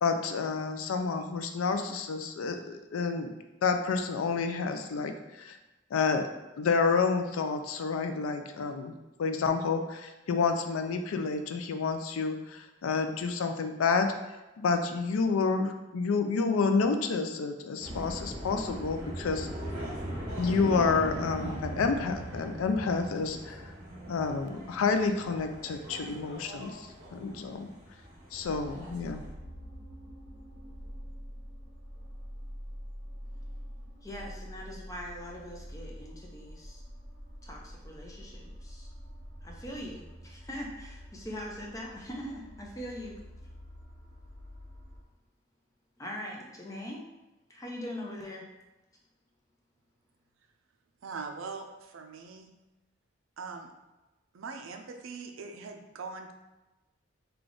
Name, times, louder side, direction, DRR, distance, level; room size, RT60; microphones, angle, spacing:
voice 1, 0.0-3.3 3.6-5.1 5.4-5.6 5.9-6.3 6.6-8.9 9.2-14.1 14.6-19.5 20.4-23.6 24.1-27.7 28.3-29.2, left 4 dB, 85° left, 7 dB, 0.4 m, -29 dB
sound 1, 17.8-29.3, equal, 35° right, 1.4 m, -40 dB
sound 2, 28.4-45.0, equal, 55° right, 0.8 m, -46 dB
voice 2, 34.0-36.8 37.4-38.9 39.4-43.1 46.0-47.0 47.5-48.4, equal, 15° left, -1 dB, 0.5 m, -41 dB
voice 3, 51.0-52.5 53.4-53.7 54.3-56.3, right 4 dB, 75° right, 4 dB, 0.4 m, -41 dB
3.4 x 2.3 x 3.8 m, 1.1 s
head